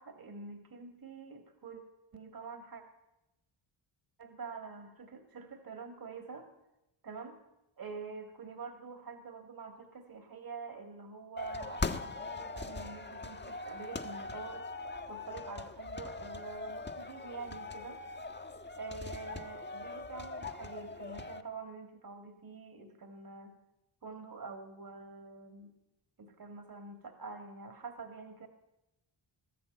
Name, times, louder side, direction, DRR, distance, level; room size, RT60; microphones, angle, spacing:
voice 1, 0.0-1.8 2.1-2.8 4.2-6.5 7.0-7.4 7.8-14.7 15.1-18.0 18.8-23.5 24.0-25.7 26.2-28.5, right 4 dB, 45° right, 6 dB, 2.4 m, -46 dB
sound 1, 11.4-21.4, left 3 dB, 20° left, 1.4 m, -41 dB
21.0 x 13.0 x 9.4 m, 0.94 s
cardioid pair, 95°, 49 cm